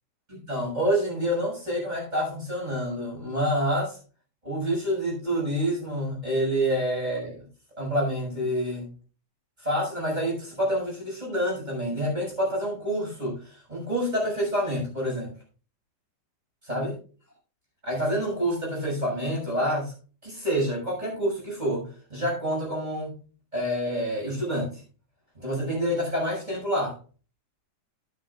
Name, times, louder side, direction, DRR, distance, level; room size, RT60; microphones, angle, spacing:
voice 1, 0.3-4.0 4.4-7.4 7.8-8.9 9.6-15.3 16.6-17.0 17.8-19.9 20.2-23.2 23.5-24.8 25.3-27.0, equal, 15° right, -3 dB, 6.6 m, -27 dB
12.0 x 11.5 x 2.5 m, 0.35 s
omnidirectional pair, 3.5 m